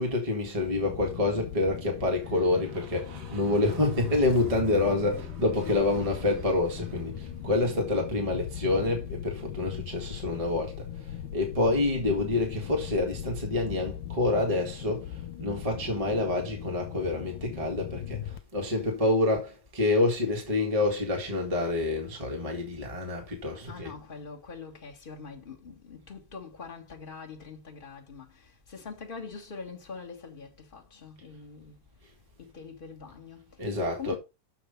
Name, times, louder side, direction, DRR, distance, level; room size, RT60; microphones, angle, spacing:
voice 1, 0.0-23.9 33.6-34.2, left 2 dB, 25° right, 0.8 m, -27 dB
sound 1, 0.6-18.4, left 10 dB, 80° left, 2.2 m, -39 dB
sound 2, 2.0-8.4, right 3 dB, 50° right, 2.3 m, -48 dB
voice 2, 5.5-6.6 23.7-31.7 32.4-33.5 33.9-34.2, left 5 dB, 45° left, 0.6 m, -44 dB
7.0 x 5.8 x 5.2 m
omnidirectional pair, 3.9 m